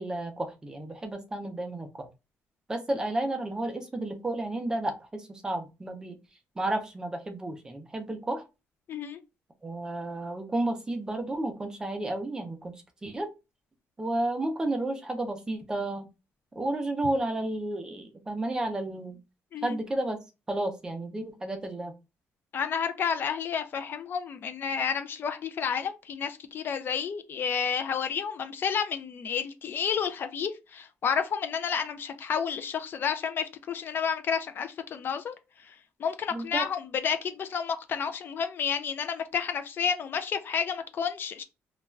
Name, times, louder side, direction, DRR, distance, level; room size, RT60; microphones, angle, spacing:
voice 1, 0.0-1.9 2.7-6.2 6.6-8.4 9.6-12.7 13.0-13.3 14.0-16.1 16.6-19.2 19.6-20.2 20.5-21.9 36.3-36.7, right 1 dB, 15° right, 0.5 m, -32 dB
voice 2, 8.9-9.2 19.5-19.8 22.5-35.4 35.6-41.4, left 7 dB, 45° left, 0.3 m, -31 dB
2.3 x 2.2 x 3.1 m
cardioid pair, 145°, 5 cm